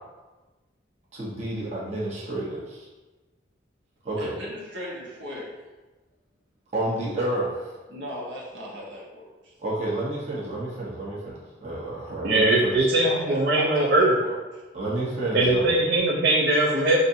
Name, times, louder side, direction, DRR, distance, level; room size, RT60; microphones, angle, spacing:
voice 1, 1.1-2.9 4.0-4.3 6.7-7.8 9.6-12.9 14.7-15.7, right 1 dB, 35° right, -7 dB, 1.0 m, -30 dB
voice 2, 4.2-5.6 7.9-9.5 13.0-14.6, equal, 75° right, -5 dB, 1.3 m, -37 dB
voice 3, 12.2-14.1 15.3-17.0, right 2 dB, 55° right, -5 dB, 0.6 m, -21 dB
6.3 x 2.6 x 2.7 m, 1.2 s
head